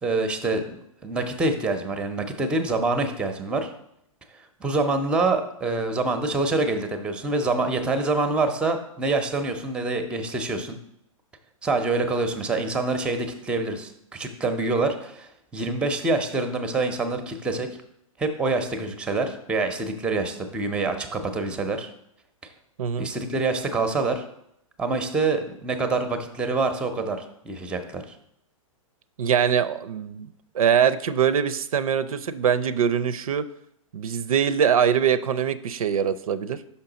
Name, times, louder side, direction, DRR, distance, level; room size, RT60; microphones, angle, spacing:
voice 1, 0.0-3.7 4.6-10.8 11.6-17.7 18.2-21.9 23.0-24.2 24.8-28.0, right 3 dB, 5° right, 8 dB, 0.5 m, -26 dB
voice 2, 22.8-23.1 29.2-30.3 30.5-33.4 33.9-36.6, right 8 dB, 85° right, 14 dB, 0.5 m, -23 dB
5.8 x 5.4 x 3.9 m, 0.75 s
hypercardioid pair, 135°, 18 cm